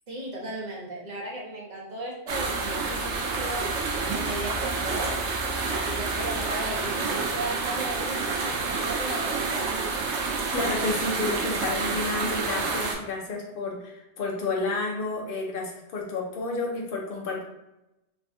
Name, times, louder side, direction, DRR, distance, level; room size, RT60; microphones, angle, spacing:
voice 1, 0.1-5.2 5.7-9.9, right 1 dB, 40° right, -3 dB, 0.9 m, -36 dB
sound 1, 2.3-12.9, right 4 dB, 75° right, 0.9 m, -29 dB
voice 2, 10.5-17.4, left 3 dB, 55° left, 0 dB, 0.8 m, -30 dB
3.3 x 2.3 x 2.6 m, 0.91 s
omnidirectional pair, 1.2 m